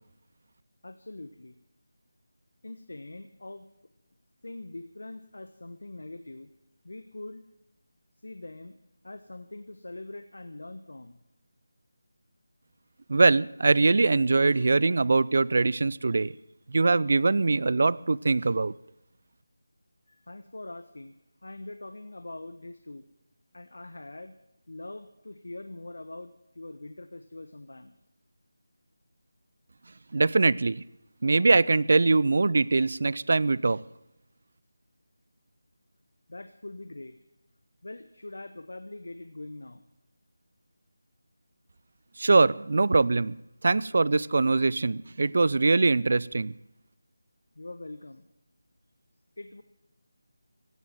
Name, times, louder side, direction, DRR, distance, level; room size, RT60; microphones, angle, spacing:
voice 1, 0.8-1.6 2.6-3.7 4.4-6.5 6.8-7.4 8.2-8.8 9.0-11.2 20.1-21.2 21.4-23.1 23.5-24.3 24.7-27.9 36.3-37.2 37.8-39.8 47.5-48.3 49.4-49.6, left 2 dB, 75° left, 10 dB, 1.2 m, -43 dB
voice 2, 13.1-16.3 16.7-18.7 30.1-30.8 31.2-33.8 42.2-43.3 43.6-46.5, right 3 dB, 55° right, 21 dB, 0.5 m, -22 dB
15.5 x 10.0 x 9.0 m, 0.87 s
figure-of-eight pair, 165°, 0 cm